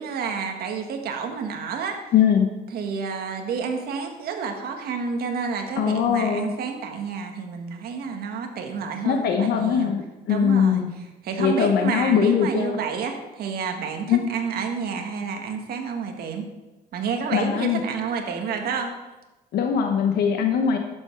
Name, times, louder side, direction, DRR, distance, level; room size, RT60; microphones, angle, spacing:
voice 1, 0.0-2.1 2.7-9.9 10.3-10.8 11.2-16.5 16.9-18.9 20.4-20.6, right 6 dB, 65° right, 4 dB, 1.8 m, -30 dB
voice 2, 2.1-2.5 5.8-6.5 9.0-10.0 10.3-10.9 11.4-12.8 14.1-14.2 17.3-17.8 19.5-20.8, left 7 dB, 70° left, 4 dB, 1.1 m, -21 dB
11.5 x 8.1 x 4.7 m, 1.1 s
cardioid pair, 110°, 17 cm